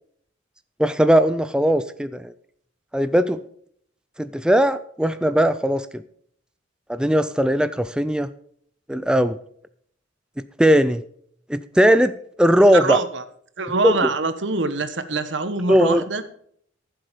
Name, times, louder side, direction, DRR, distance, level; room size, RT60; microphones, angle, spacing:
voice 1, 0.8-2.3 2.9-3.4 4.2-6.0 6.9-8.3 8.9-9.4 10.6-11.0 11.5-13.0 13.8-13.9 15.7-16.0, equal, 5° right, 12 dB, 0.4 m, -18 dB
voice 2, 12.7-13.2 13.6-16.2, right 3 dB, 70° right, 11 dB, 1.2 m, -24 dB
14.5 x 7.8 x 5.1 m, 0.63 s
head